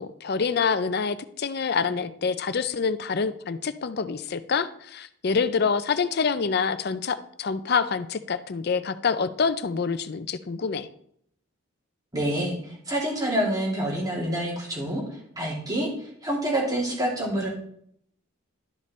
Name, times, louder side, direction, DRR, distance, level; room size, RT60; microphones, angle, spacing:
voice 1, 0.0-10.9, left 5 dB, 50° left, 13 dB, 0.5 m, -26 dB
voice 2, 12.1-15.0 15.4-15.9 16.2-17.5, right 1 dB, 20° right, -2 dB, 2.5 m, -27 dB
12.0 x 5.2 x 4.2 m, 0.67 s
head